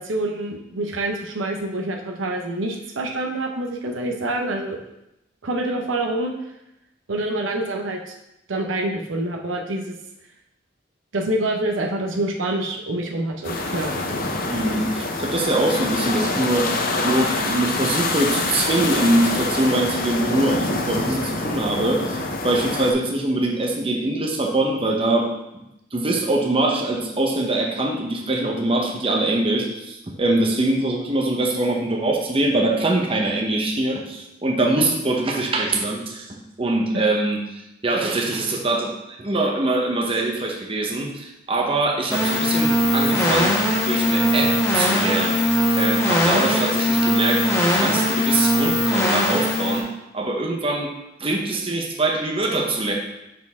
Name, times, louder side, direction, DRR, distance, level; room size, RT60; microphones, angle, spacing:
voice 1, 0.0-4.8 5.4-6.3 7.1-8.1 8.5-10.0 11.1-13.9 36.9-37.0, right 1 dB, 85° right, 2 dB, 0.8 m, -26 dB
sound 1, 13.4-22.9, left 2 dB, 50° left, 0.7 m, -25 dB
voice 2, 14.5-16.7 17.0-25.3 25.5-25.6 25.9-43.6 43.8-50.9 51.2-52.9, right 2 dB, 30° right, 0 dB, 0.8 m, -23 dB
sound 2, 42.1-49.8, equal, 15° left, 1.2 m, -20 dB
6.1 x 4.6 x 3.6 m, 0.87 s
head